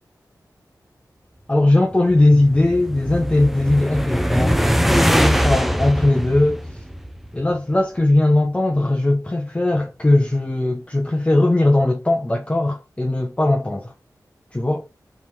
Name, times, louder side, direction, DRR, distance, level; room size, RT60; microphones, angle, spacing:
voice 1, 1.5-6.8 7.3-13.9 14.5-14.8, left 2 dB, 20° left, 1.0 m, -19 dB
sound 1, 1.9-7.4, equal, 5° right, 0.7 m, -22 dB
4.7 x 4.0 x 5.4 m
wide cardioid pair, 75°, 7 cm